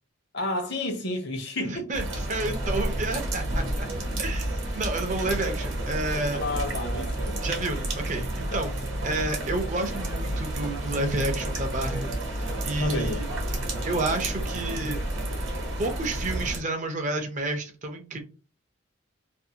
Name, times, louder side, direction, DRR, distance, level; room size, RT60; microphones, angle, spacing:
voice 1, 0.3-1.9 6.4-7.6 8.5-8.6 12.8-13.2, left 2 dB, 55° left, 0.7 m, -31 dB
voice 2, 1.6-3.9 4.2-6.4 7.4-8.7 9.0-13.3 13.8-15.0 15.8-18.2, right 2 dB, 35° right, 0.5 m, -30 dB
sound 1, 1.9-16.6, right 1 dB, 65° right, 0.9 m, -30 dB
2.5 x 2.4 x 2.7 m
head